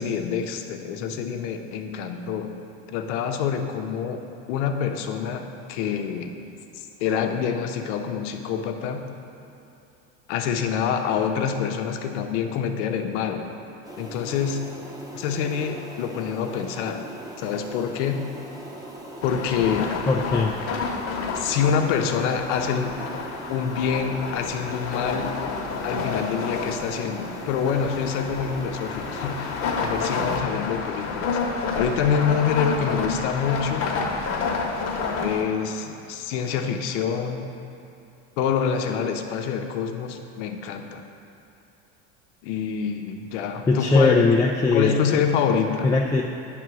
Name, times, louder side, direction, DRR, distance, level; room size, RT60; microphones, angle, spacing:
voice 1, 0.0-2.5 2.9-4.2 4.5-6.3 6.7-9.0 10.3-13.5 14.0-14.7 15.1-17.0 17.4-18.2 19.2-19.9 21.3-22.9 23.5-25.3 25.8-29.5 29.8-31.4 31.7-33.9 35.2-37.5 38.4-41.0 42.4-44.2 44.7-45.9, left 7 dB, 85° left, 5 dB, 0.8 m, -26 dB
sound 1, 13.8-30.4, equal, 10° right, 0.9 m, -40 dB
sound 2, 19.2-35.4, left 4 dB, 45° left, 1.1 m, -30 dB
voice 2, 20.1-20.5 43.7-44.9 45.8-46.2, left 3 dB, 10° left, -3 dB, 0.3 m, -19 dB
9.2 x 3.7 x 6.1 m, 2.8 s
supercardioid pair, 115°, 34 cm